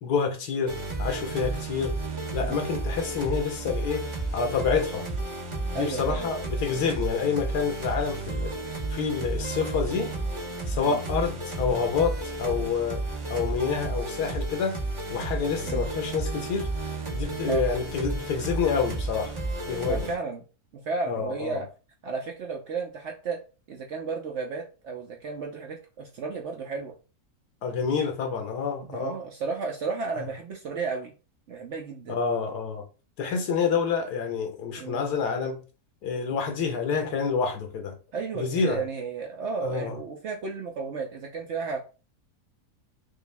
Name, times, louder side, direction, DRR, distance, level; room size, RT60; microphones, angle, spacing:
voice 1, 0.0-2.0 2.3-4.1 4.3-5.1 5.7-8.5 8.9-10.1 10.7-13.0 13.3-14.8 15.1-16.7 17.1-19.3 19.7-20.1 21.0-21.6 27.6-29.2 30.1-30.2 32.1-32.8 33.2-35.6 36.0-37.9 38.3-38.8 39.6-40.0, left 5 dB, 80° left, 1.4 m, -28 dB
sound 1, 0.7-20.1, right 2 dB, 25° right, 0.7 m, -32 dB
voice 2, 5.7-6.3 10.8-11.0 15.6-15.8 17.5-17.6 19.8-20.4 20.7-21.7 22.0-23.4 23.7-26.9 28.8-31.1 31.5-32.2 34.8-35.0 38.1-41.8, right 4 dB, 65° right, 0.7 m, -33 dB
5.4 x 2.0 x 3.3 m
omnidirectional pair, 1.7 m